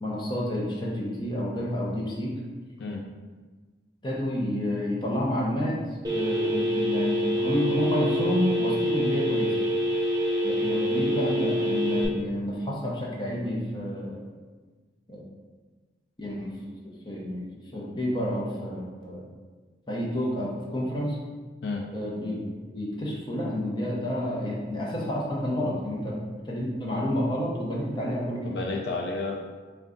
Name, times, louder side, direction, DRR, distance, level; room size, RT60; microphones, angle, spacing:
voice 1, 0.0-2.3 4.0-5.8 6.1-9.5 10.4-14.2 15.1-15.2 16.2-17.4 17.7-19.3 19.9-21.2 21.9-22.4 22.7-26.1 26.5-28.6, left 1 dB, 25° left, -4 dB, 0.6 m, -29 dB
Telephone, 6.0-12.1, equal, 20° right, 0.5 m, -26 dB
voice 2, 28.4-29.4, left 3 dB, 65° left, 1 dB, 0.3 m, -31 dB
3.7 x 2.2 x 3.6 m, 1.4 s
head